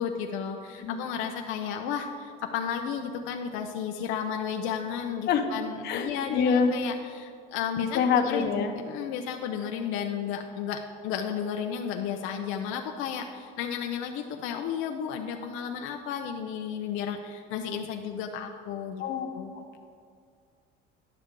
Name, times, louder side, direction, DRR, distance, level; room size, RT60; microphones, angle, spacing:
voice 1, 0.0-8.5 8.9-19.5, left 7 dB, 85° left, 4 dB, 0.6 m, -33 dB
voice 2, 5.8-6.7 7.8-8.7 19.0-19.3 19.5-19.8, left 6 dB, 55° left, 5 dB, 0.9 m, -26 dB
11.0 x 6.7 x 3.7 m, 2.2 s
cardioid pair, 145°, 20 cm